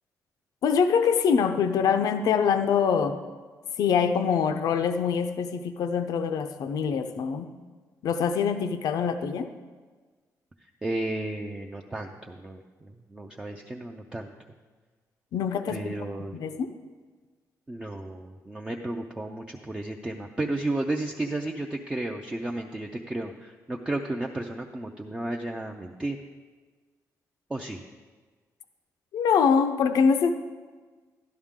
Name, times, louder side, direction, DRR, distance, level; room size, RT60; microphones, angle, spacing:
voice 1, 0.6-3.2 3.8-7.5 8.0-9.5 15.3-16.0 16.3-16.7 29.1-30.3, left 6 dB, 80° left, 8 dB, 0.7 m, -24 dB
voice 2, 10.6-14.3 15.7-16.4 17.7-26.2 27.5-27.8, right 2 dB, 15° right, 2 dB, 0.5 m, -33 dB
12.0 x 11.5 x 3.7 m, 1.4 s
wide cardioid pair, 165°, 6 cm